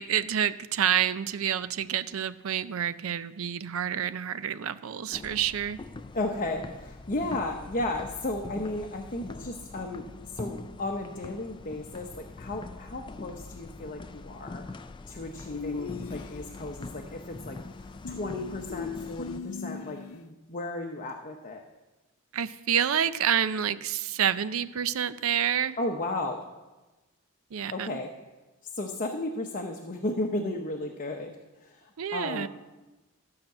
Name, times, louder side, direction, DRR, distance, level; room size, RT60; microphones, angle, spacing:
voice 1, 0.0-5.8 22.3-25.8 27.5-28.0 32.0-32.5, right 9 dB, 70° right, 14 dB, 0.5 m, -28 dB
sound 1, 5.1-19.4, left 3 dB, 20° left, 0.4 m, -43 dB
voice 2, 6.1-17.6 18.1-21.6 25.8-26.5 27.7-28.1 28.6-32.5, left 2 dB, 40° left, 2 dB, 0.8 m, -34 dB
sound 2, 15.5-16.8 18.0-20.2, left 5 dB, 85° left, 0.6 m, -39 dB
13.0 x 5.8 x 7.7 m, 1.1 s
head